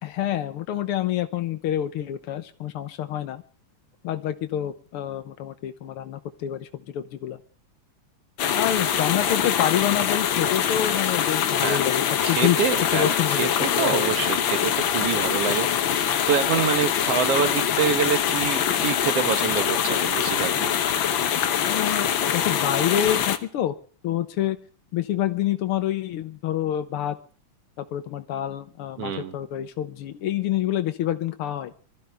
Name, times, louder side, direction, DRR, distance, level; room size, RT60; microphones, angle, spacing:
voice 1, 0.0-3.4 4.0-7.4 8.5-12.6 12.9-14.0 21.6-23.7 24.0-24.6 24.9-27.2 27.8-31.7, left 11 dB, 65° left, 10 dB, 1.4 m, -27 dB
sound 1, 8.4-23.4, left 9 dB, 85° left, 1.0 m, -24 dB
voice 2, 12.2-20.8 29.0-29.4, right 8 dB, 60° right, 10 dB, 1.8 m, -26 dB
23.5 x 14.0 x 3.5 m, 0.41 s
omnidirectional pair, 3.6 m